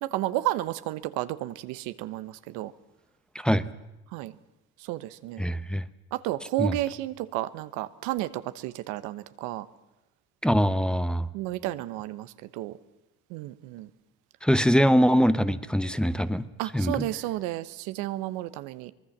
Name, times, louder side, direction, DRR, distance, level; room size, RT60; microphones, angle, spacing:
voice 1, 0.0-2.7 4.1-4.3 4.8-5.4 6.1-9.7 11.3-12.8 13.3-13.9 16.6-18.9, right 16 dB, 80° right, 1.1 m, -32 dB
voice 2, 3.3-3.7 5.4-5.9 6.6-6.8 10.4-11.3 14.4-16.5 16.7-17.1, equal, 5° left, 1.0 m, -23 dB
24.0 x 20.5 x 7.3 m
supercardioid pair, 85°, 29 cm